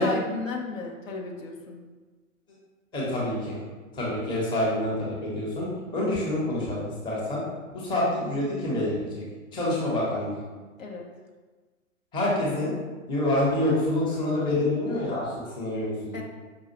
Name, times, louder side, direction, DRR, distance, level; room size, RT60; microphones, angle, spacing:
voice 1, 0.0-1.8 8.2-8.4 10.8-11.1 16.1-16.2, left 4 dB, 70° left, 0 dB, 0.8 m, -34 dB
voice 2, 2.9-3.6 3.9-7.4 7.7-9.2 9.5-10.4 12.1-12.7 13.1-16.2, left 1 dB, 10° left, -6 dB, 0.7 m, -27 dB
5.1 x 2.3 x 2.8 m, 1.3 s
figure-of-eight pair, 110°, 41 cm